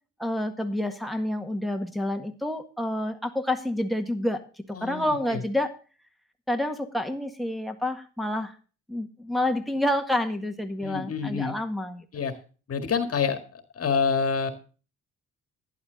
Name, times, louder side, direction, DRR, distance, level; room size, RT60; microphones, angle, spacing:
voice 1, 0.2-4.4 4.7-5.7 6.5-8.6 8.9-12.1, left 1 dB, ahead, 4 dB, 1.8 m, -28 dB
voice 2, 4.7-5.4 10.8-11.6 12.1-12.4 12.7-14.5, left 6 dB, 50° left, 7 dB, 1.8 m, -27 dB
11.5 x 11.0 x 3.9 m, 0.37 s
cardioid pair, 90°, 30 cm